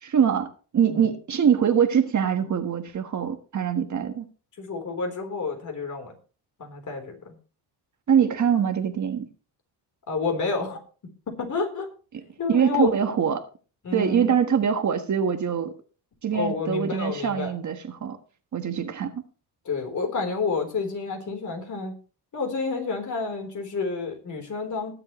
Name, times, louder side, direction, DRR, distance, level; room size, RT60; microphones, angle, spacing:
voice 1, 0.0-4.3 8.1-9.3 12.5-13.4 13.9-15.7 16.2-18.2 18.5-19.2, right 8 dB, 45° right, 7 dB, 1.4 m, -23 dB
voice 2, 4.6-6.1 6.6-7.3 10.1-10.8 11.4-11.9 12.4-12.9 13.8-14.4 16.3-17.5 19.7-22.0 22.3-24.9, left 4 dB, 45° left, 5 dB, 3.8 m, -29 dB
20.0 x 7.7 x 3.1 m, 0.37 s
cardioid pair, 115°, 41 cm